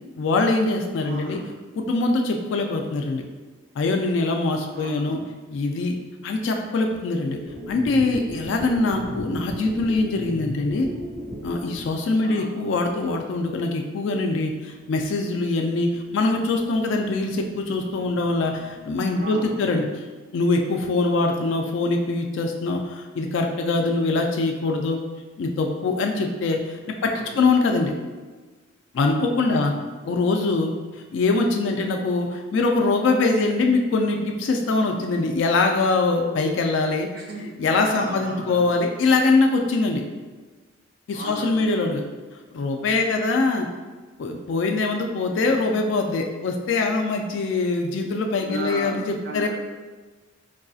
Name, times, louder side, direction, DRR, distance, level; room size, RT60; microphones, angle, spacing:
voice 1, 0.2-1.4 1.8-3.2 3.8-5.2 5.5-6.0 6.2-7.4 7.7-10.9 11.4-19.8 20.3-25.0 25.4-27.9 28.9-29.7 30.0-37.1 37.6-40.0 41.1-42.0 42.5-43.7 44.2-49.5, left 3 dB, 65° left, 3 dB, 0.3 m, -23 dB
voice 2, 1.0-1.4 4.7-5.2 12.2-13.1 19.1-19.8 27.0-27.4 29.4-29.8 37.1-38.7 41.1-41.7 48.3-49.5, right 1 dB, 50° right, -2 dB, 0.7 m, -36 dB
sound 1, 7.4-12.8 13.3-13.4 13.5-13.6 13.9-14.7 14.9-19.2, left 1 dB, 15° right, 1.2 m, -38 dB
4.7 x 2.5 x 2.3 m, 1.3 s
head